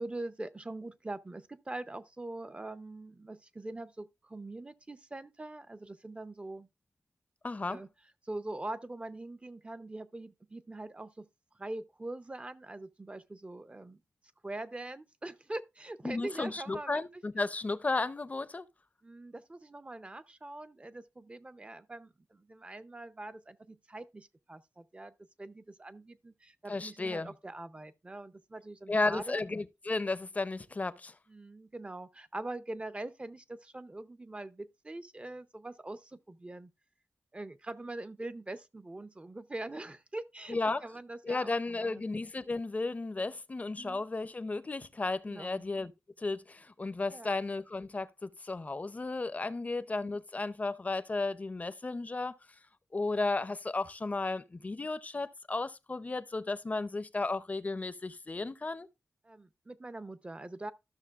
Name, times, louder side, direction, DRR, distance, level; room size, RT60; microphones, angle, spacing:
voice 1, 0.0-6.7 7.7-7.9 8.2-11.3 11.6-14.0 14.4-17.2 19.0-25.1 25.4-29.4 31.3-36.7 37.3-42.1 43.8-44.1 45.3-45.7 47.1-47.4 59.2-60.7, right 2 dB, 25° right, 0.5 m, -43 dB
voice 2, 7.4-7.8 16.0-18.7 26.7-27.3 28.9-31.2 40.5-40.8 41.2-45.9 46.2-52.3 52.9-58.9, left 3 dB, 30° left, 0.5 m, -34 dB
13.0 x 6.3 x 2.4 m
wide cardioid pair, 105°, 5 cm